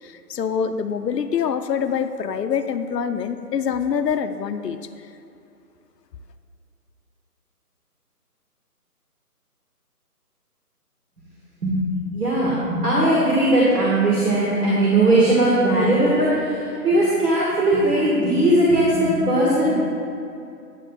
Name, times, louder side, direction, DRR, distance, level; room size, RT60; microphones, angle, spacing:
voice 1, 0.0-5.1, left 7 dB, 85° left, 9 dB, 0.6 m, -25 dB
voice 2, 11.6-19.7, right 1 dB, 70° right, -6 dB, 1.6 m, -19 dB
9.0 x 7.3 x 2.3 m, 2.7 s
figure-of-eight pair, 165°, 48 cm